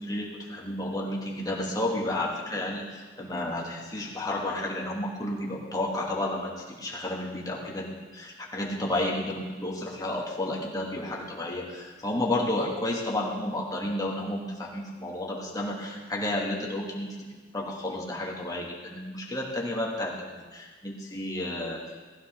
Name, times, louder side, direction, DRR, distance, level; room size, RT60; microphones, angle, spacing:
voice 1, 0.0-17.3 17.5-22.1, left 1 dB, 20° left, -3 dB, 2.8 m, -32 dB
19.5 x 15.5 x 4.0 m, 1.4 s
head